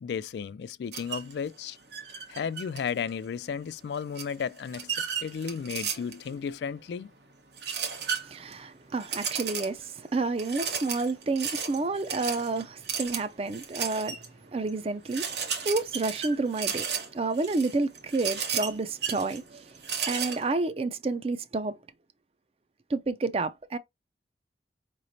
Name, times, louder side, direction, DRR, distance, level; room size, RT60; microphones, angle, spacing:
voice 1, 0.0-1.8 2.3-7.1, left 6 dB, 75° left, 0.3 m, -34 dB
sound 1, 0.9-1.3 1.9-3.1 4.2-6.3 7.6-8.5 9.0-9.9 10.4-14.3 14.7-14.8 15.1-20.4, right 7 dB, 75° right, 1.1 m, -34 dB
voice 2, 8.2-14.2 14.5-16.9 17.1-19.6 20.1-21.8 22.9-23.8, right 3 dB, 35° right, 0.4 m, -30 dB
4.9 x 3.1 x 2.6 m
head